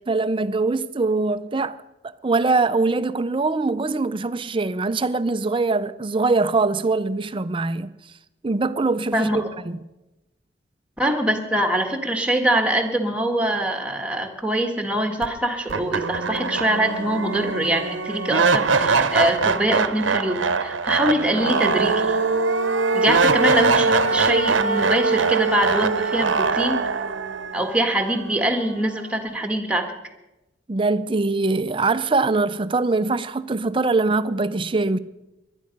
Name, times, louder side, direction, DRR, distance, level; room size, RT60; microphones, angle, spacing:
voice 1, 0.1-1.8 2.2-7.9 8.4-9.8 30.7-35.0, right 3 dB, 25° right, 0.5 m, -22 dB
voice 2, 9.1-9.5 11.0-22.2 22.9-26.8 27.5-29.9, right 1 dB, 5° right, 1.6 m, -23 dB
sound 1, 15.2-15.3 15.7-28.8, right 4 dB, 85° right, 0.9 m, -22 dB
20.0 x 11.5 x 5.3 m
head